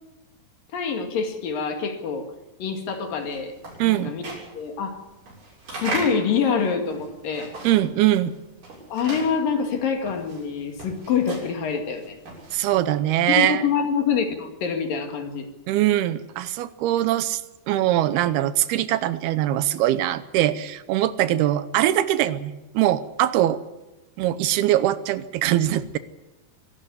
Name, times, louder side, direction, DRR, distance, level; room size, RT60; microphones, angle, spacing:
voice 1, 0.7-2.3 2.6-3.6 3.8-4.3 4.5-5.0 5.7-7.5 8.9-12.2 13.3-15.5, left 6 dB, 65° left, 5 dB, 3.6 m, -26 dB
sound 1, 3.0-8.0 8.3-12.8, right 3 dB, 55° right, 8.3 m, -36 dB
voice 2, 3.8-4.1 7.6-8.3 12.5-13.6 15.7-17.4 17.7-23.6 24.2-26.0, right 13 dB, 80° right, 14 dB, 2.8 m, -22 dB
24.0 x 12.5 x 9.6 m, 1.0 s
omnidirectional pair, 4.5 m